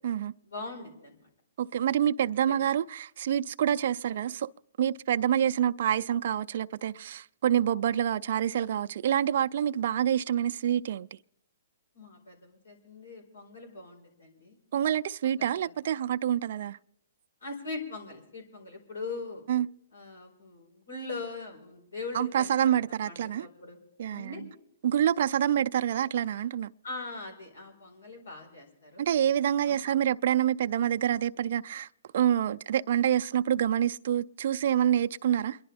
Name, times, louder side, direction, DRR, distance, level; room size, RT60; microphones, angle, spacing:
voice 1, 0.4-1.3 2.5-2.6 11.9-14.6 15.2-15.7 17.4-19.4 19.9-22.5 22.8-23.8 24.1-24.4 26.8-29.1 29.6-30.0, left 3 dB, 90° left, 4.6 m, -41 dB
voice 2, 1.6-4.5 4.8-11.1 14.7-16.8 19.5-19.7 22.1-23.5 24.0-24.3 24.8-26.7 29.0-31.9 32.1-35.6, right 10 dB, 60° right, 0.4 m, -27 dB
28.5 x 11.0 x 3.5 m
hypercardioid pair, 135°, 0 cm